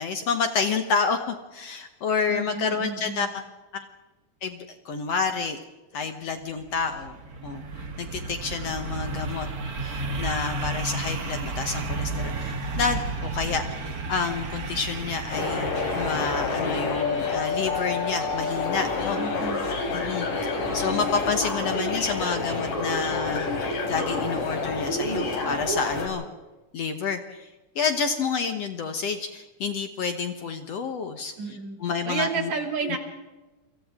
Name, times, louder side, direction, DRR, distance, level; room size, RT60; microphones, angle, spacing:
voice 1, 0.0-3.4 3.7-3.9 4.4-5.6 5.9-7.1 7.4-7.6 8.0-9.5 9.8-19.2 19.9-23.5 23.9-26.3 26.7-27.5 27.8-32.5 32.8-33.0, left 5 dB, 60° left, 7 dB, 1.9 m, -29 dB
voice 2, 2.3-3.3 19.2-19.6 31.4-31.8 32.1-33.0, right 4 dB, 60° right, 4 dB, 3.8 m, -31 dB
sound 1, 6.4-18.1, right 3 dB, 35° right, 1.7 m, -33 dB
sound 2, 15.3-26.1, left 3 dB, 75° left, 5.3 m, -28 dB
29.0 x 25.5 x 3.7 m, 1.2 s
omnidirectional pair, 3.8 m